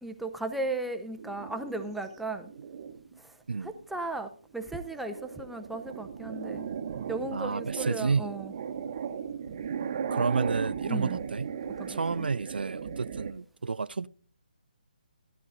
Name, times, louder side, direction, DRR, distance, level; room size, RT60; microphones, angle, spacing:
voice 1, 0.0-2.5 3.2-3.3 3.6-6.7 7.1-8.5 10.1-10.5 10.9-11.2 11.8-12.3, right 2 dB, ahead, 0.5 m, -36 dB
sound 1, 1.2-3.2 3.7-4.1 4.6-13.3, right 7 dB, 35° right, 0.8 m, -37 dB
voice 2, 7.3-8.3 10.1-11.5 11.9-14.1, right 4 dB, 80° right, 0.4 m, -30 dB
16.0 x 11.0 x 2.5 m
figure-of-eight pair, 155°, 5 cm